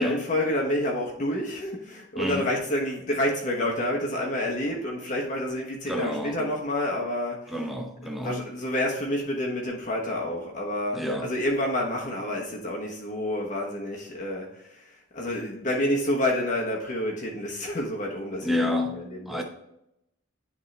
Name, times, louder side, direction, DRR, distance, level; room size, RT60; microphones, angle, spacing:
voice 1, 0.0-7.5 8.2-14.8 15.1-19.4, left 1 dB, 40° left, 1.2 m, -29 dB
voice 2, 2.2-2.5 5.9-6.5 7.5-8.4 10.9-11.3 18.4-19.4, left 1 dB, ahead, 0.8 m, -29 dB
10.5 x 3.7 x 3.3 m
head